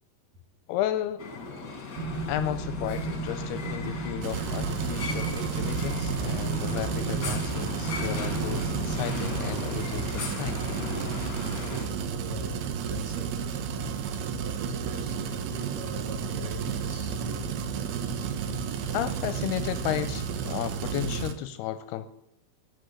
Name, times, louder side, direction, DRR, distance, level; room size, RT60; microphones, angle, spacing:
voice 1, 0.7-1.2 2.3-10.6 18.9-22.1, left 12 dB, 80° left, 2.5 m, -33 dB
sound 1, 1.2-11.9, left 4 dB, 35° left, 1.8 m, -38 dB
sound 2, 2.0-9.0, right 3 dB, 90° right, 4.5 m, -34 dB
sound 3, 4.2-21.3, right 6 dB, 70° right, 2.9 m, -32 dB
voice 2, 11.6-17.5, left 1 dB, 50° right, 2.6 m, -44 dB
14.0 x 7.6 x 9.9 m
omnidirectional pair, 5.0 m